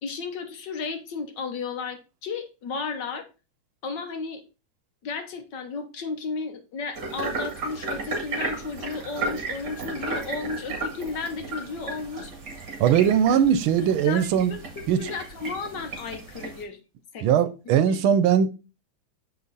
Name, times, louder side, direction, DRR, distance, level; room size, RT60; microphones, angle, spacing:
voice 1, 0.0-3.3 3.8-4.4 5.0-12.3 13.8-16.8 17.1-17.3, left 4 dB, 60° left, 1.6 m, -34 dB
sound 1, 6.9-16.6, right 3 dB, 55° right, 2.5 m, -34 dB
voice 2, 12.8-14.5 14.9-15.0 17.2-18.5, right 8 dB, 85° right, 1.6 m, -20 dB
6.7 x 5.5 x 4.0 m
omnidirectional pair, 2.2 m